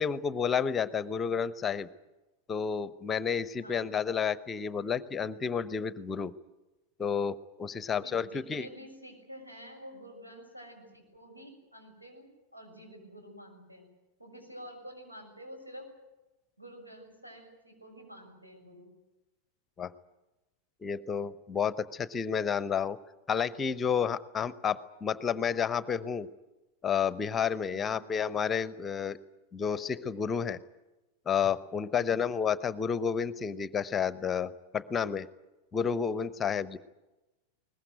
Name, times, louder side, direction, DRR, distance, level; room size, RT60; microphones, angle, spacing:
voice 1, 0.0-1.9 2.5-6.3 7.0-8.7 19.8-19.9 20.8-23.0 23.3-26.3 26.8-29.2 29.5-30.6 31.3-35.3 35.7-36.8, left 7 dB, 20° left, 17 dB, 0.8 m, -30 dB
voice 2, 3.6-4.1 7.9-13.9 14.2-15.9 16.6-18.9 27.7-28.0 31.9-32.2, equal, 85° right, 2 dB, 6.7 m, -49 dB
22.0 x 20.0 x 9.2 m, 1.1 s
figure-of-eight pair, 90°, 0 cm